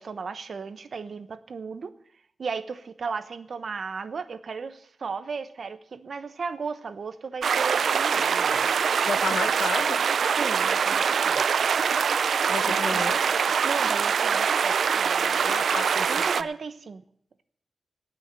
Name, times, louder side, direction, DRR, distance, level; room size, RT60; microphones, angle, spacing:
voice 1, 0.0-1.9 2.4-8.7 10.4-11.6 12.6-13.2 13.6-15.7 16.1-17.0, right 5 dB, 55° right, 12 dB, 1.0 m, -35 dB
sound 1, 7.4-16.4, right 6 dB, 85° right, 0.5 m, -24 dB
voice 2, 9.0-10.0 12.5-13.2 15.4-16.3, left 6 dB, 65° left, 16 dB, 0.6 m, -32 dB
18.0 x 6.3 x 8.9 m, 0.64 s
wide cardioid pair, 160°, 0 cm